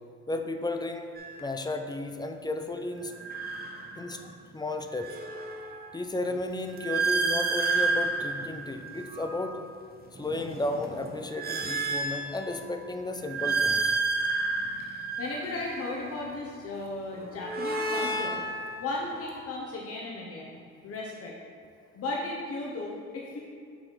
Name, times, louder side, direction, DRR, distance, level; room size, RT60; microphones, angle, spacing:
voice 1, 0.3-1.1 1.4-3.1 4.0-5.2 5.9-9.6 10.1-13.9, left 2 dB, 15° left, 6 dB, 0.5 m, -33 dB
sound 1, 1.2-1.4 3.1-4.3 4.7-9.5 10.1-12.7 13.2-16.1 17.1-19.4, right 3 dB, 30° right, 0.8 m, -31 dB
voice 2, 14.9-18.4 18.8-21.3 21.9-23.4, left 2 dB, 50° left, -2 dB, 0.9 m, -36 dB
6.1 x 4.0 x 5.0 m, 2.4 s
cardioid pair, 90°, 30 cm